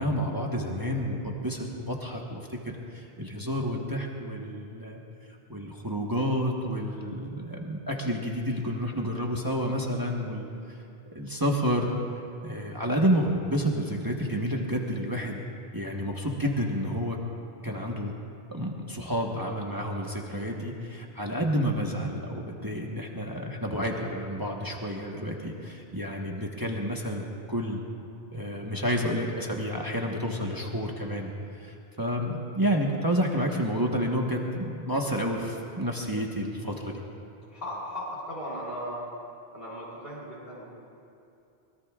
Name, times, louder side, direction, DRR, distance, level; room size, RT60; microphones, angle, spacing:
voice 1, 0.0-5.0 5.5-10.5 11.1-11.9 12.4-15.4 15.7-17.2 17.6-18.1 18.5-27.8 28.3-31.3 31.6-37.0, equal, 20° right, -1 dB, 1.3 m, -30 dB
voice 2, 37.5-39.1 39.5-40.6, equal, 60° left, -6 dB, 3.8 m, -37 dB
24.0 x 21.5 x 2.4 m, 2.6 s
omnidirectional pair, 1.1 m